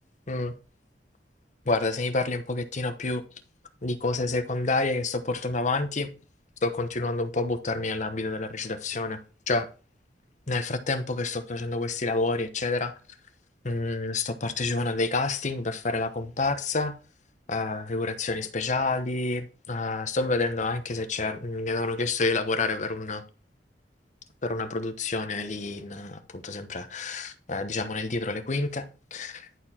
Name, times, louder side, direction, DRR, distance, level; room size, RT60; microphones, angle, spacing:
voice 1, 1.6-3.2 3.8-6.1 6.6-9.2 9.5-9.7 10.5-12.9 13.6-16.9 17.5-23.2 24.4-29.5, left 3 dB, 45° left, 1.0 m, -28 dB
11.0 x 4.5 x 4.3 m
head